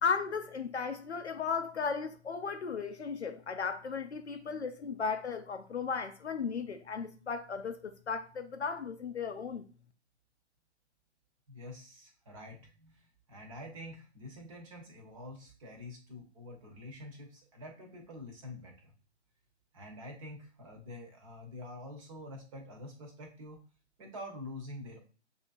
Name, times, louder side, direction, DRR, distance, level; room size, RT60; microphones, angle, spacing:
voice 1, 0.0-9.7, left 5 dB, 70° left, 0.6 m, -35 dB
voice 2, 11.5-18.9 19.7-23.6 24.0-25.0, left 1 dB, 30° right, 1.1 m, -47 dB
6.9 x 2.8 x 2.5 m
figure-of-eight pair, 130°, 35 cm